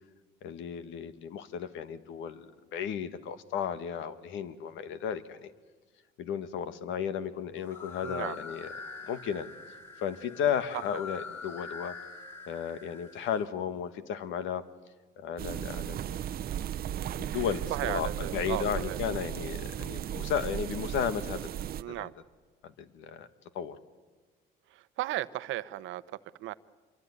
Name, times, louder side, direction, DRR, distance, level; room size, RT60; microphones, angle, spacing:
voice 1, 0.4-5.5 6.2-8.7 9.1-9.5 10.0-12.0 12.5-14.7 15.2-16.2 17.2-21.5 21.9-22.1 22.6-23.3 23.5-23.8, left 8 dB, 75° left, 13 dB, 1.7 m, -34 dB
sound 1, 7.6-13.4, left 5 dB, 10° left, 4.0 m, -44 dB
voice 2, 8.0-8.4 17.7-19.0 21.8-22.1 24.7-26.0 26.4-26.5, right 15 dB, 75° right, 15 dB, 0.9 m, -35 dB
sound 2, 15.4-21.8, right 10 dB, 50° right, 0.8 m, -36 dB
26.0 x 23.0 x 9.7 m, 1.3 s
cardioid pair, 110°, 20 cm